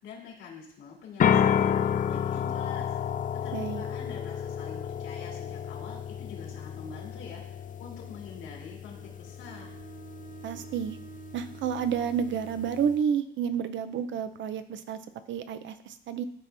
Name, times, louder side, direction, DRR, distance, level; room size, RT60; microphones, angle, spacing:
voice 1, 0.0-3.0 3.3-7.4 7.8-9.8, left 5 dB, 90° left, -2 dB, 2.4 m, -45 dB
sound 1, 1.2-13.0, left 8 dB, 40° left, 0.4 m, -31 dB
voice 2, 3.5-3.8 10.4-11.0 11.3-15.0 15.3-16.2, right 7 dB, 70° right, 11 dB, 0.6 m, -30 dB
Bowed string instrument, 8.9-12.9, right 8 dB, 45° right, 1.7 m, -49 dB
12.0 x 4.4 x 3.4 m, 0.70 s
cardioid pair, 90°, 20 cm